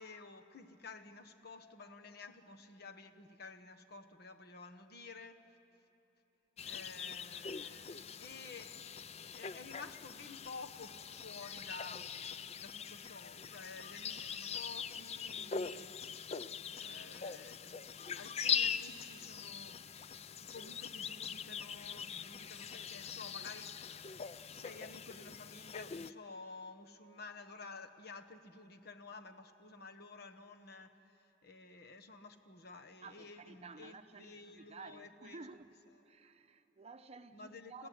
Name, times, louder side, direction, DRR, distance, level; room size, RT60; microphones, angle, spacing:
voice 1, 0.0-5.4 6.6-12.1 12.6-16.0 16.7-17.8 18.1-23.9 24.5-31.2 31.4-35.4 37.3-37.9, left 3 dB, 55° left, 1.3 m, -52 dB
sound 1, 6.6-26.1, left 7 dB, 35° left, 0.5 m, -42 dB
voice 2, 33.0-35.7 36.0-37.9, right 4 dB, 35° right, 0.8 m, -53 dB
29.0 x 16.0 x 9.4 m
head